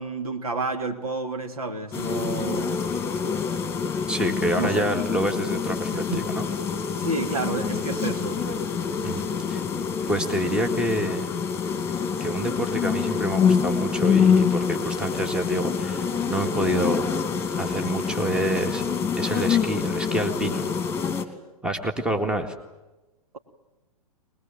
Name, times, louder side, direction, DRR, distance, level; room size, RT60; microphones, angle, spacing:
voice 1, 0.0-2.8 4.5-4.9 5.9-6.3 6.9-8.4, right 3 dB, 70° right, 5 dB, 3.1 m, -30 dB
sound 1, 1.9-21.2, left 6 dB, 15° left, 2.5 m, -26 dB
voice 2, 4.1-6.4 9.0-9.6 10.1-11.3 12.2-17.1 17.5-18.8 19.2-20.7 21.6-22.5, right 1 dB, 5° right, 6 dB, 2.0 m, -27 dB
23.0 x 21.0 x 9.2 m, 1.1 s
figure-of-eight pair, 110°, 19 cm